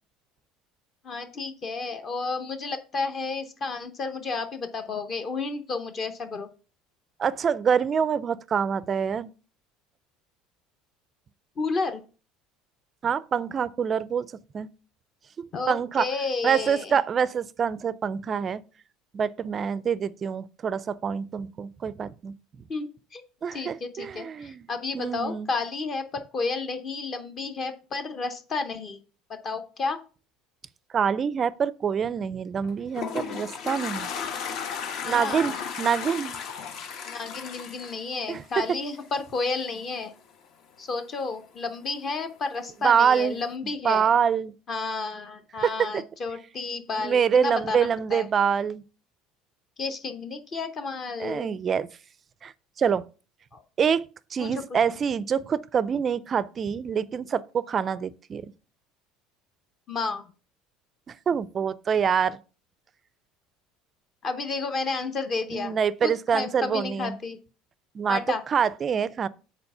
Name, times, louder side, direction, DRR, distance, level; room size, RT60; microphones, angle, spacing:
voice 1, 1.0-6.5 11.6-12.0 15.5-17.0 22.7-23.2 23.5-29.0 29.4-30.0 35.0-35.6 37.1-40.1 40.8-44.1 44.7-48.3 49.8-51.5 53.5-53.6 54.4-54.6 59.9-60.2 64.2-65.7 66.0-67.4 68.1-68.4, left 4 dB, 35° left, 0.8 m, -31 dB
voice 2, 7.2-9.3 13.0-14.3 14.5-14.7 15.4-16.1 16.4-18.6 19.1-22.3 23.4-24.7 24.9-25.5 30.9-34.1 35.0-36.4 38.3-38.4 42.8-43.4 43.8-44.5 45.6-45.9 47.0-48.8 51.2-51.9 52.4-52.5 52.8-53.0 53.8-54.0 54.3-58.5 61.3-62.4 65.5-67.2 67.9-68.2 68.5-69.3, right 7 dB, 30° right, 0.4 m, -25 dB
Toilet flush, 32.6-38.9, left 6 dB, 55° left, 1.0 m, -34 dB
7.0 x 4.2 x 5.4 m
cardioid pair, 135°, 0 cm